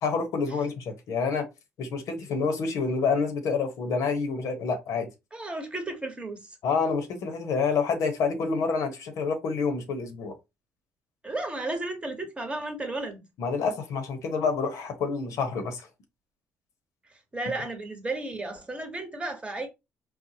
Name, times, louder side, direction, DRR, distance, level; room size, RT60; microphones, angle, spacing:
voice 1, 0.0-1.5 1.8-5.1 6.6-10.4 13.4-15.9, left 5 dB, 70° left, 0.9 m, -28 dB
voice 2, 5.3-6.6 11.2-13.2 17.3-19.7, right 2 dB, 20° right, 1.0 m, -33 dB
4.2 x 2.2 x 2.7 m
cardioid pair, 85°, 6 cm